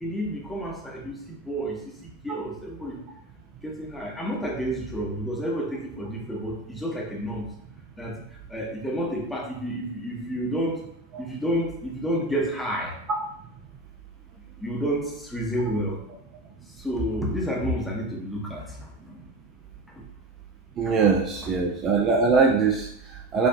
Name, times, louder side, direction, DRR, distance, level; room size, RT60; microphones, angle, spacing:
voice 1, 0.0-3.0 3.6-7.5 8.0-8.2 8.5-10.8 11.2-13.0 14.6-16.0 16.8-19.3 19.9-20.0 20.9-21.0 21.4-21.5, equal, 5° left, -2 dB, 0.8 m, -30 dB
voice 2, 20.8-23.5, right 5 dB, 30° right, 1 dB, 0.3 m, -22 dB
4.1 x 2.5 x 2.3 m, 0.72 s
figure-of-eight pair, 90°, 0 cm